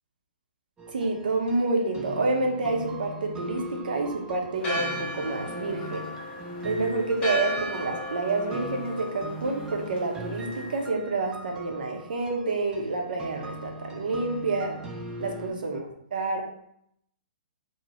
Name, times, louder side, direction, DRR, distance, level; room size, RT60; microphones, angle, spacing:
sound 1, 0.8-15.5, equal, 15° right, 0.6 m, -40 dB
voice 1, 0.9-6.0 6.6-14.7 15.2-15.8 16.1-16.4, right 3 dB, 65° right, 2 dB, 1.0 m, -28 dB
Church bell, 4.6-10.9, left 1 dB, 20° left, 1.2 m, -35 dB
4.0 x 2.5 x 4.3 m, 0.72 s
figure-of-eight pair, 125°, 5 cm